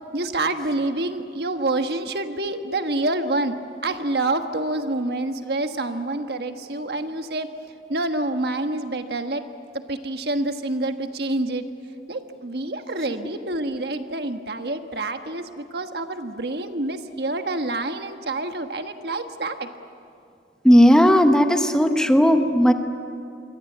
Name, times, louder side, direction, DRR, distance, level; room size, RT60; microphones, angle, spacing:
voice 1, 0.1-3.6 3.8-7.5 7.9-9.4 9.9-11.6 12.1-19.7, right 2 dB, 65° right, 7 dB, 1.4 m, -27 dB
voice 2, 20.6-22.7, equal, 5° left, 6 dB, 1.1 m, -15 dB
27.0 x 24.0 x 8.0 m, 2.5 s
head